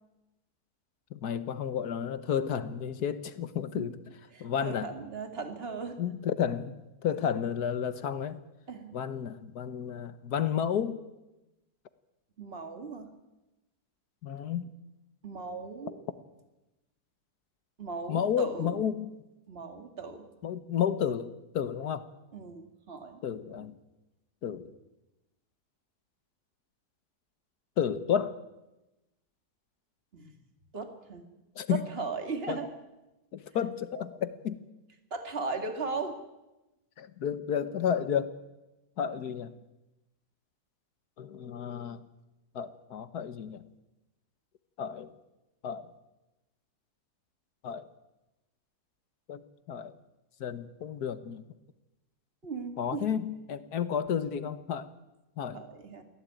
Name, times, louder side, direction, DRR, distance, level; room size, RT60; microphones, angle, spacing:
voice 1, 1.1-4.0 4.4-4.9 6.0-8.4 8.9-11.0 14.2-14.7 18.1-19.1 20.4-22.1 23.2-23.7 24.4-24.7 27.8-28.4 31.6-31.8 32.5-32.6 33.3-34.6 37.0-38.3 39.0-39.5 41.2-42.0 42.6-43.6 44.8-45.1 45.6-45.9 47.6-47.9 49.3-49.4 49.7-49.9 50.4-51.4 52.8-54.9 55.4-55.6, left 8 dB, 75° left, 13 dB, 1.7 m, -31 dB
voice 2, 4.3-6.0 8.7-8.9 12.4-13.1 15.2-16.0 17.8-18.7 19.5-20.3 22.3-23.2 30.1-30.3 30.7-31.2 31.7-32.7 34.0-34.1 35.1-36.2 52.4-53.1 55.5-56.0, right 4 dB, 35° right, 7 dB, 2.4 m, -37 dB
23.5 x 16.5 x 9.3 m, 1.0 s
omnidirectional pair, 1.7 m